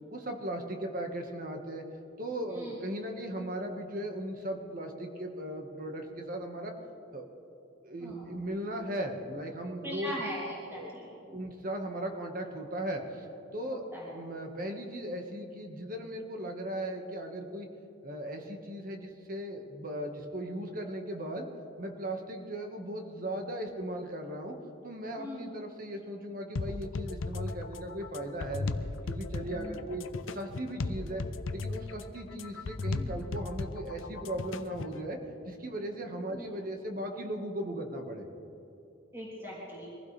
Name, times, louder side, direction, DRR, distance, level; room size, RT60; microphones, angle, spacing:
voice 1, 0.1-1.8 2.2-6.7 7.1-7.2 7.8-10.2 10.7-10.9 11.3-13.3 13.5-17.7 18.0-21.5 21.8-24.5 24.8-28.7 29.1-31.2 31.5-35.2 35.4-38.2, right 1 dB, 45° right, 3 dB, 1.6 m, -37 dB
voice 2, 9.8-11.4 13.9-14.1 25.2-25.5 29.4-29.8 32.9-33.1 36.3-36.5 39.1-39.9, equal, 15° right, -7 dB, 3.2 m, -40 dB
sound 1, 26.6-35.0, left 3 dB, 85° left, 0.6 m, -36 dB
24.0 x 15.5 x 3.4 m, 2.8 s
head